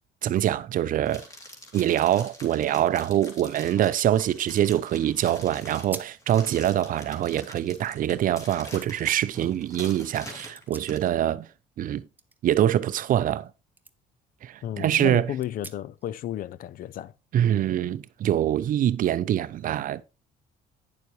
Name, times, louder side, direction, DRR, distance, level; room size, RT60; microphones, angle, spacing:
voice 1, 0.2-1.3 1.7-11.5 11.8-12.0 12.4-13.5 14.4-15.3 17.3-20.0, right 11 dB, 55° right, 0.5 m, -24 dB
sound 1, 1.1-11.1, left 1 dB, 20° left, 2.8 m, -45 dB
sound 2, 5.8-6.3 6.7-8.1 8.7-8.9 10.3-11.4 11.7-13.5 13.8-13.9 14.4-14.5 15.4-16.1, right 3 dB, 10° right, 0.8 m, -48 dB
voice 2, 14.6-17.1, left 11 dB, 55° left, 0.5 m, -33 dB
9.5 x 6.9 x 3.1 m
cardioid pair, 110°, 17 cm